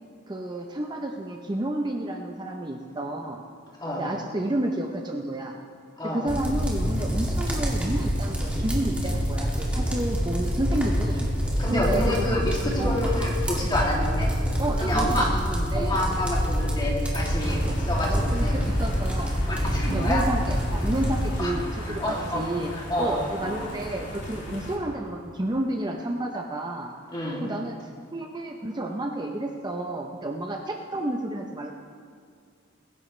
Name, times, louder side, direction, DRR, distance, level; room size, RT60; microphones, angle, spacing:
voice 1, 0.3-3.4 4.0-5.6 6.1-11.2 11.7-12.5 12.8-13.0 14.6-16.0 17.5-17.7 18.1-19.4 19.9-22.7 23.0-26.9 27.4-27.8 28.1-31.7, right 1 dB, 20° right, 2 dB, 0.7 m, -31 dB
voice 2, 6.0-6.3 11.6-14.3 14.8-15.3 15.7-18.6 19.5-20.2 21.4-21.5 21.8-23.7 27.1-27.4, left 1 dB, 25° left, -4 dB, 2.6 m, -28 dB
sound 1, 6.3-21.3, equal, 5° right, 2.2 m, -26 dB
sound 2, 17.1-24.8, equal, 60° left, 2.7 m, -36 dB
23.0 x 10.5 x 3.3 m, 2.2 s
head